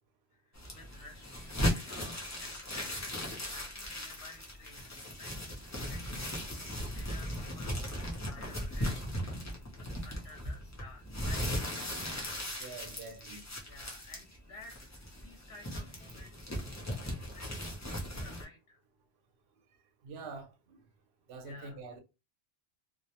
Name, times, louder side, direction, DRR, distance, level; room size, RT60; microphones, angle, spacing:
voice 1, 0.3-9.4 10.0-11.6 13.7-16.5 16.9-18.8 21.4-21.8, left 3 dB, 75° left, 0.9 m, -54 dB
sound 1, 0.5-18.4, equal, 25° left, 0.4 m, -38 dB
voice 2, 12.6-13.4 20.0-20.8 21.3-22.0, right 4 dB, 75° right, 0.8 m, -45 dB
2.2 x 2.0 x 2.7 m
omnidirectional pair, 1.1 m